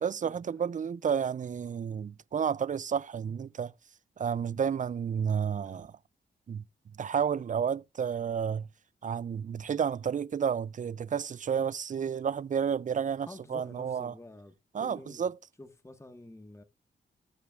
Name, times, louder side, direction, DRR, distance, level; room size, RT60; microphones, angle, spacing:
voice 1, 0.0-3.7 4.2-5.9 6.5-6.6 7.0-8.7 9.0-14.1 14.7-15.3, right 7 dB, 40° right, 0.4 m, -31 dB
voice 2, 13.3-15.3 15.6-16.6, left 1 dB, 15° left, 1.4 m, -49 dB
18.5 x 6.6 x 2.4 m
cardioid pair, 55°, 21 cm